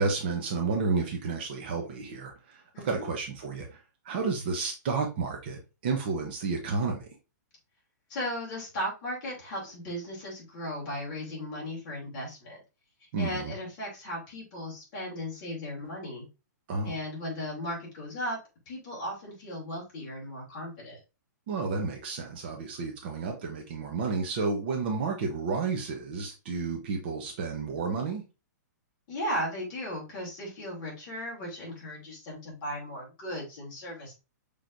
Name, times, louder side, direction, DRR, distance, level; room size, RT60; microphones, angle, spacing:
voice 1, 0.0-7.1 13.1-13.5 16.7-17.0 21.5-28.2, right 4 dB, 35° right, 0.9 m, -31 dB
voice 2, 2.7-3.0 8.1-12.6 13.2-16.3 16.8-18.4 18.7-21.0 29.1-34.1, equal, 30° left, 2.5 m, -36 dB
6.1 x 3.4 x 2.6 m
hypercardioid pair, 175°, 10 cm